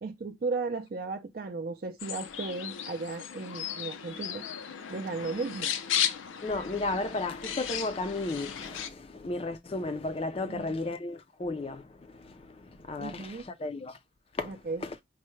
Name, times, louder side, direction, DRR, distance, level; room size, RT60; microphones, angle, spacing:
voice 1, 0.0-4.4 4.9-5.7 10.4-10.8 13.0-13.5 14.4-14.8, right 3 dB, 50° right, 0.4 m, -35 dB
sound 1, 2.0-8.9, left 9 dB, 85° left, 0.5 m, -35 dB
voice 2, 6.4-14.0 14.4-15.0, left 2 dB, 30° left, 0.4 m, -34 dB
4.6 x 2.1 x 3.1 m
head